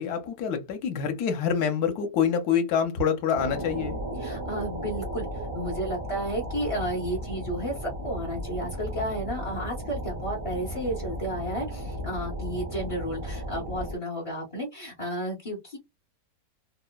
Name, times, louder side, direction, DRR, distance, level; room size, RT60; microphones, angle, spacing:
voice 1, 0.0-4.0, left 7 dB, 70° left, 1.1 m, -26 dB
sound 1, 3.3-13.9, equal, 60° right, 0.6 m, -35 dB
voice 2, 4.2-5.3 5.5-15.8, right 1 dB, 55° left, 0.3 m, -32 dB
2.9 x 2.0 x 2.2 m
omnidirectional pair, 1.8 m